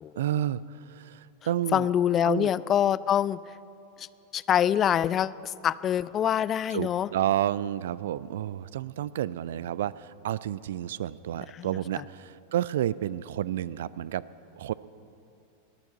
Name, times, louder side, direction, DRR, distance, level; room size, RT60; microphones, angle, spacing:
voice 1, 0.2-1.9 2.2-2.5 6.7-14.2 14.6-14.7, right 11 dB, 60° right, 19 dB, 0.3 m, -30 dB
voice 2, 1.7-3.4 4.0-4.1 4.3-7.1 11.5-11.7, left 9 dB, 25° left, 18 dB, 0.3 m, -25 dB
20.5 x 7.1 x 8.7 m, 2.6 s
figure-of-eight pair, 90°, 0 cm